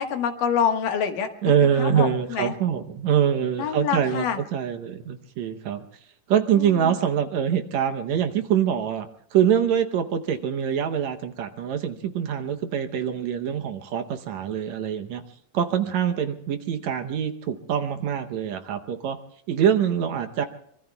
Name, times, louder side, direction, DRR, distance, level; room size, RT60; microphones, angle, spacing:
voice 1, 0.0-2.5 3.6-4.4 6.5-6.9, left 7 dB, 90° left, 5 dB, 3.1 m, -27 dB
voice 2, 1.4-5.9 6.3-15.2 15.5-19.2 19.5-20.5, right 8 dB, 70° right, 6 dB, 2.0 m, -24 dB
25.0 x 24.0 x 2.3 m, 0.69 s
omnidirectional pair, 3.7 m